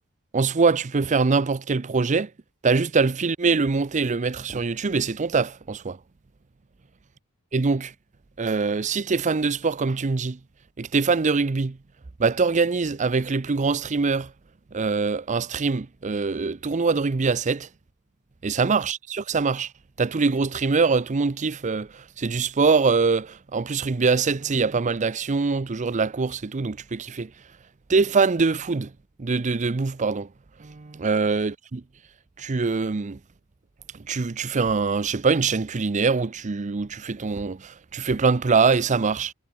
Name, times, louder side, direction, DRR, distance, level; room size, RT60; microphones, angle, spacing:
voice 1, 0.3-2.3 2.6-6.0 7.5-7.9 8.4-10.4 10.8-11.8 12.2-14.3 14.7-17.7 18.4-19.7 20.0-27.3 27.9-28.9 29.2-30.3 30.6-31.8 32.4-33.2 33.9-39.3, right 4 dB, 35° right, 0.5 m, -23 dB
head